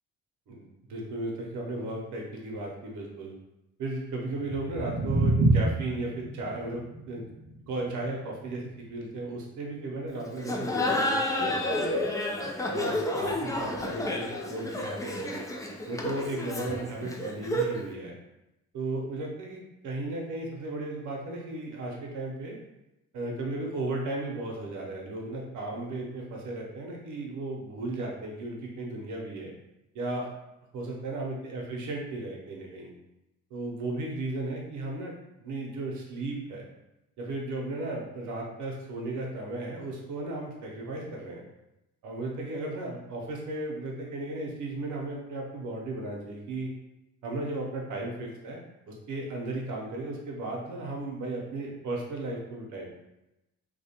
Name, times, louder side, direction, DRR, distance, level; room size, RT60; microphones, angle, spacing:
voice 1, 0.5-3.3 3.8-7.3 7.7-12.0 12.7-15.4 15.9-18.2 18.7-22.6 23.1-29.5 29.9-30.3 30.7-32.9 33.5-35.1 35.4-36.7 37.2-41.4 42.0-46.7 47.2-48.6 48.9-52.9, right 2 dB, 75° right, -1 dB, 0.7 m, -35 dB
sound 1, 4.3-10.4, right 2 dB, 40° right, 0.5 m, -29 dB
Laughter, 10.4-17.9, left 1 dB, 10° left, 0.3 m, -30 dB
2.4 x 2.2 x 2.8 m, 0.92 s
cardioid pair, 90°, 30 cm